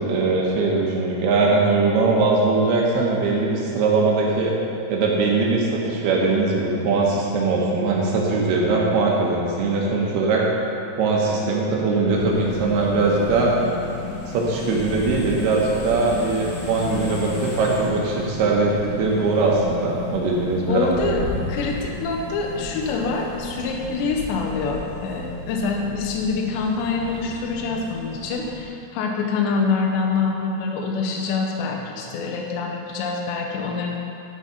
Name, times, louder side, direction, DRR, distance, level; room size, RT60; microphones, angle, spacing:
voice 1, 0.0-4.6 4.9-10.5 11.0-13.5 14.3-21.5, right 3 dB, 75° right, -2 dB, 2.7 m, -21 dB
sound 1, 12.1-28.6, left 2 dB, 60° left, 3.1 m, -34 dB
Rain, 14.6-18.1 18.7-18.8 19.3-25.8, left 2 dB, 40° left, 1.7 m, -38 dB
voice 2, 20.7-33.9, left 4 dB, 80° left, 0 dB, 2.9 m, -25 dB
12.0 x 5.6 x 5.0 m, 2.7 s
omnidirectional pair, 5.1 m